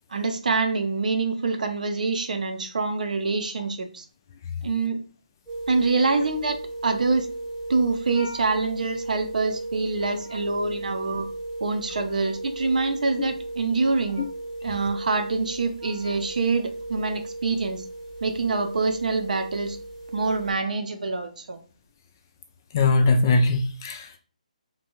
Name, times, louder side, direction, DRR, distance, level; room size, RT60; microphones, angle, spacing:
voice 1, 0.1-4.0 4.6-5.0 5.7-6.6 6.8-7.3 7.7-11.3 11.6-14.2 14.6-17.8 18.2-19.8 20.1-21.6, right 3 dB, 70° right, 6 dB, 0.5 m, -25 dB
sound 1, 5.5-20.5, right 2 dB, 15° right, 0.8 m, -36 dB
voice 2, 22.7-24.2, left 3 dB, 25° left, 5 dB, 0.3 m, -20 dB
2.6 x 2.2 x 2.9 m, 0.38 s
hypercardioid pair, 165°, 4 cm